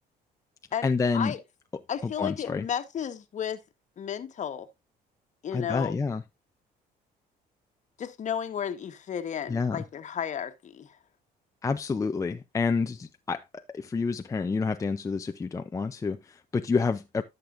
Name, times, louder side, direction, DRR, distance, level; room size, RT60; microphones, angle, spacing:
voice 1, 0.8-1.3 2.0-2.6 5.5-6.2 9.5-9.8 11.6-17.2, left 4 dB, 20° left, 0.6 m, -28 dB
voice 2, 1.9-3.6 4.0-4.7 5.4-6.0 8.0-10.9, left 8 dB, 45° left, 1.3 m, -33 dB
14.0 x 6.7 x 2.6 m
cardioid pair, 110°, 17 cm